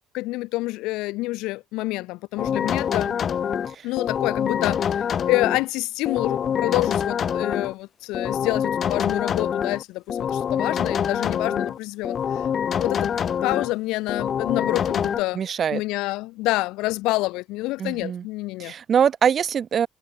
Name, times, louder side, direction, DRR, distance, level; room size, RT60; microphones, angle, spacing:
voice 1, 0.1-3.2 3.8-12.4 12.8-13.1 13.4-15.4 15.7-18.7, left 20 dB, 85° left, 1.3 m, -27 dB
sound 1, 2.4-5.6 6.1-7.7 8.1-9.8 10.1-11.8 12.0-13.7 14.1-15.2, left 8 dB, 35° left, 0.5 m, -25 dB
voice 2, 15.3-15.8 17.8-18.2 18.6-19.9, right 8 dB, 30° right, 0.6 m, -23 dB
cardioid pair, 170°, 0 cm